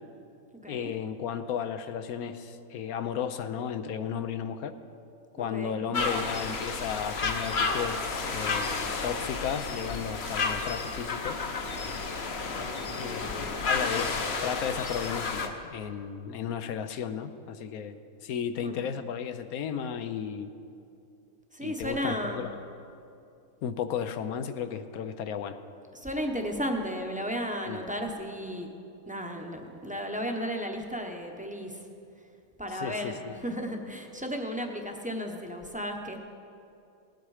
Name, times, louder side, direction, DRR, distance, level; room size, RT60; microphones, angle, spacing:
voice 1, 0.7-4.7 5.4-11.4 12.9-20.5 21.6-22.5 23.6-25.6 27.7-27.8 32.7-33.4, left 8 dB, 80° left, 9 dB, 1.1 m, -34 dB
voice 2, 5.4-5.8 12.5-13.3 18.6-18.9 21.5-22.4 25.9-28.7 29.1-31.7 32.6-36.2, equal, 5° right, 2 dB, 0.8 m, -34 dB
sound 1, 5.9-15.5, left 4 dB, 50° left, 1.1 m, -31 dB
18.5 x 8.7 x 4.9 m, 2.6 s
omnidirectional pair, 1.5 m